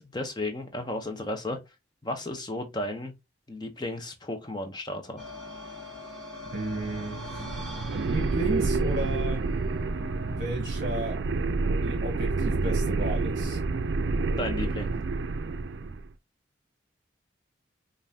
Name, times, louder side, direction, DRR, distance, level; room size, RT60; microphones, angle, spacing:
voice 1, 0.0-1.6 2.0-3.1 3.5-5.2 14.4-14.9, left 1 dB, 20° left, 0.8 m, -34 dB
sound 1, 5.2-10.4, left 2 dB, ahead, 1.6 m, -42 dB
voice 2, 6.5-7.4 7.9-9.4 10.3-11.2 11.8-13.6, right 2 dB, 45° right, 1.1 m, -33 dB
sound 2, 6.5-16.1, right 3 dB, 70° right, 0.4 m, -29 dB
5.3 x 2.6 x 2.7 m
head